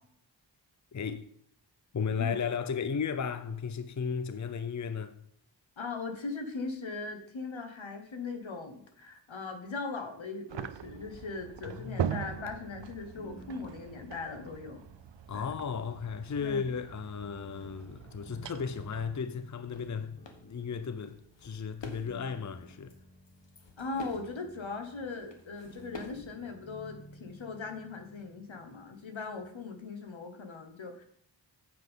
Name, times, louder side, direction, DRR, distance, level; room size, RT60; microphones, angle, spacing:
voice 1, 0.9-1.3 1.9-5.2 11.8-12.0 15.3-20.2 20.4-22.9, left 6 dB, 40° left, 0.6 m, -35 dB
voice 2, 5.8-14.8 15.3-15.5 16.4-16.7 23.8-31.0, left 4 dB, 85° left, 1.4 m, -39 dB
sound 1, 10.5-19.2, right 9 dB, 70° right, 0.6 m, -41 dB
sound 2, 10.8-29.8, right 1 dB, 25° left, 2.8 m, -55 dB
sound 3, 19.3-19.4 19.7-20.0 20.3-20.4 21.0-22.4 22.7-23.0 23.3-24.3 25.0-26.3, left 3 dB, 70° left, 1.4 m, -48 dB
9.0 x 7.7 x 3.7 m
wide cardioid pair, 55°, 45 cm